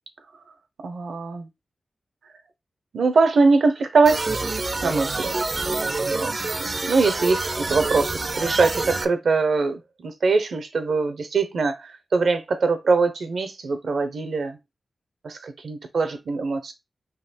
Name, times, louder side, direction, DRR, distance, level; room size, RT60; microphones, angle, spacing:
voice 1, 0.8-1.5 2.9-4.2 4.8-5.3 6.0-14.6 15.2-16.7, right 4 dB, 75° right, 0.9 m, -22 dB
sound 1, 4.1-9.1, right 3 dB, 40° right, 0.5 m, -27 dB
4.1 x 3.0 x 4.3 m
wide cardioid pair, 85°, 0 cm